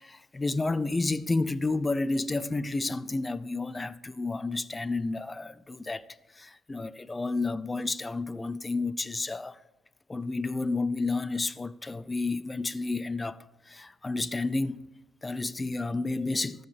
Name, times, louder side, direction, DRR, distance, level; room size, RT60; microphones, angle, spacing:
voice 1, 0.0-6.1 6.3-9.6 10.1-14.9 15.2-16.6, left 3 dB, 20° left, 0.6 m, -31 dB
13.0 x 7.9 x 6.8 m
cardioid pair, 90°, 0 cm